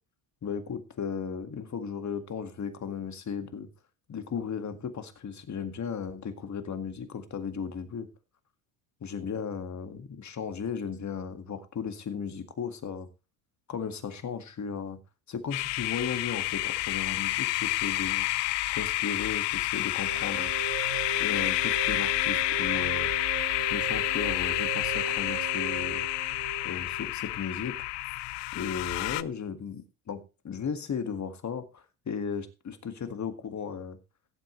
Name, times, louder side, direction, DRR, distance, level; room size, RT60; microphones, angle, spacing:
voice 1, 0.4-3.7 4.1-8.1 9.0-13.1 13.7-15.0 15.3-18.3 18.7-20.5 21.2-23.1 23.7-26.0 26.6-27.7 28.5-34.0, left 6 dB, 35° left, 8 dB, 1.9 m, -35 dB
sound 1, 15.5-29.2, left 18 dB, 60° left, 0.6 m, -29 dB
sound 2, 19.9-27.1, right 7 dB, 85° right, 5.2 m, -38 dB
17.0 x 7.8 x 3.1 m, 0.29 s
supercardioid pair, 90°, 48 cm